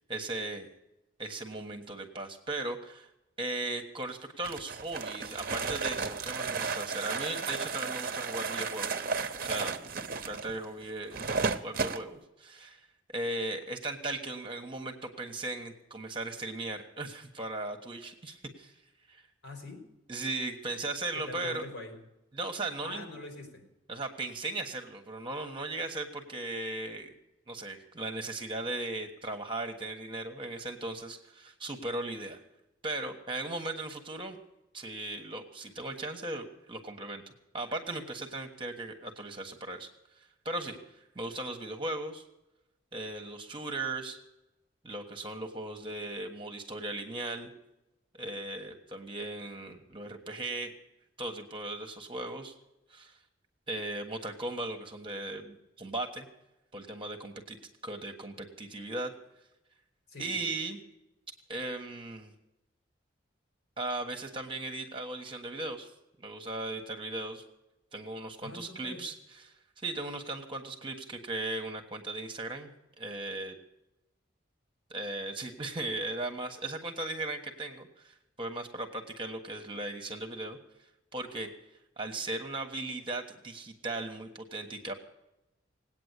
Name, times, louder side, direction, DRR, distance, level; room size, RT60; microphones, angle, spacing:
voice 1, 0.1-0.7 1.2-3.1 3.4-9.0 9.4-9.7 10.3-11.2 11.6-12.8 13.1-18.7 19.1-19.2 20.1-21.7 22.3-23.0 23.9-27.1 27.5-32.4 32.8-34.4 34.7-37.2 37.5-39.9 40.2-42.2 42.9-44.2 44.8-47.5 48.1-50.7 51.2-52.5 52.9-53.2 53.7-56.3 56.7-57.6 57.8-59.1 60.2-60.8 61.5-62.3 63.8-65.9 66.2-67.4 67.9-72.7 73.0-73.6 74.9-80.6 81.1-81.5 82.0-84.9, right 2 dB, 25° right, 4 dB, 1.4 m, -37 dB
sound 1, 4.4-12.0, right 4 dB, 45° right, 0.8 m, -33 dB
voice 2, 19.4-19.9 21.1-21.9 22.8-23.6 60.1-60.4 68.4-69.0, left 2 dB, 70° left, 4 dB, 4.3 m, -44 dB
18.5 x 9.0 x 8.3 m, 0.92 s
head